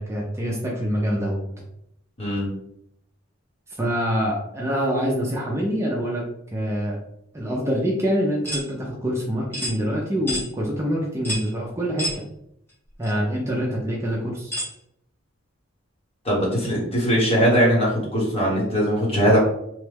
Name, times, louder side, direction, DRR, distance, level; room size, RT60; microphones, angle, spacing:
voice 1, 0.0-1.4 3.8-6.2 6.5-7.0 7.3-12.1 13.0-14.5, equal, 15° right, -3 dB, 0.5 m, -25 dB
sound 1, 8.4-8.7 9.5-9.8 10.3-10.5 11.2-11.5 12.0-12.2 13.0-13.1 14.5-14.7, equal, 10° left, 0.9 m, -28 dB
voice 2, 16.2-19.4, equal, 30° left, -4 dB, 1.2 m, -20 dB
3.0 x 2.2 x 3.3 m, 0.76 s
head